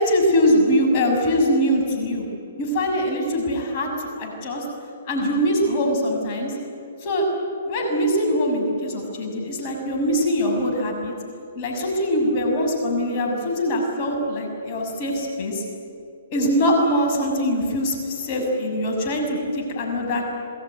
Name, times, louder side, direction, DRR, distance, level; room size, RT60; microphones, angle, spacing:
voice 1, 0.0-2.3 2.6-3.9 4.2-4.6 5.1-6.5 7.0-7.3 7.6-11.1 11.6-15.6 16.3-20.3, equal, 40° left, 1 dB, 6.5 m, -22 dB
27.0 x 21.5 x 9.5 m, 2.5 s
hypercardioid pair, 130°, 0 cm